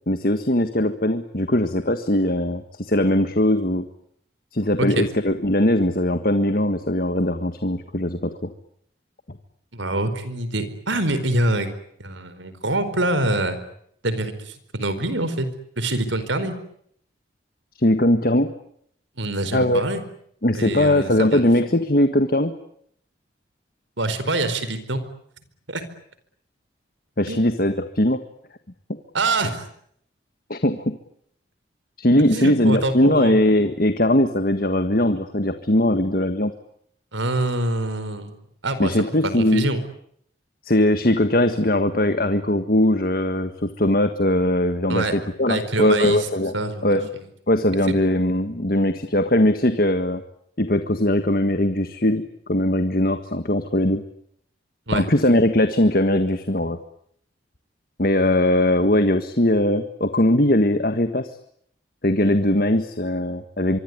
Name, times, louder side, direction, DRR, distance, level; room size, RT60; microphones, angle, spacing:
voice 1, 0.1-3.9 4.5-8.3 17.8-18.5 19.5-19.8 20.4-22.5 27.2-28.2 30.5-31.0 32.0-36.5 38.8-39.7 40.7-46.5 46.8-47.1 47.5-50.2 50.6-52.2 52.5-54.0 54.9-56.8 58.0-61.3 62.0-63.8, left 1 dB, 50° left, 9 dB, 1.6 m, -20 dB
voice 2, 9.7-13.6 14.0-15.5 15.8-16.5 19.2-20.0 20.5-21.5 24.0-25.0 25.7-25.8 27.3-27.4 29.1-29.7 32.3-33.3 37.1-39.1 39.4-39.8 44.9-45.1 45.5-46.3 46.5-46.9 47.9-48.1 54.9-55.1, right 2 dB, 90° right, 12 dB, 4.6 m, -25 dB
25.0 x 24.5 x 9.7 m, 0.68 s
head